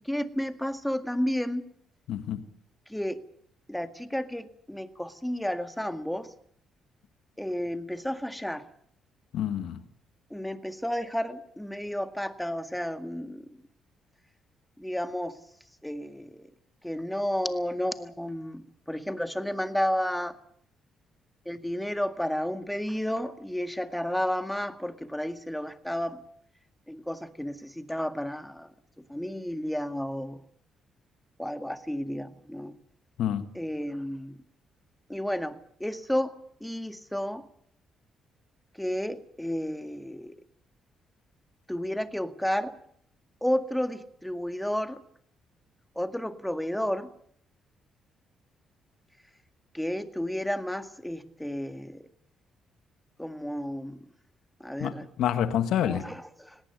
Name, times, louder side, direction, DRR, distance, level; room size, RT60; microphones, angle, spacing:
voice 1, 0.0-1.7 2.9-3.2 3.7-6.3 7.4-8.6 10.3-13.6 14.8-15.4 15.8-16.5 16.8-20.4 21.5-26.2 26.9-28.7 29.1-30.4 31.4-32.8 33.5-34.4 35.1-36.3 36.6-37.5 38.7-40.4 41.7-42.7 43.4-45.0 46.0-47.1 49.7-52.0 53.2-54.0 54.6-55.1 55.8-56.6, equal, 5° left, 2.0 m, -32 dB
voice 2, 2.1-2.4 9.3-9.8 33.2-33.5 54.8-56.1, left 10 dB, 80° left, 1.8 m, -28 dB
19.0 x 18.0 x 9.2 m
cardioid pair, 90°, 0 cm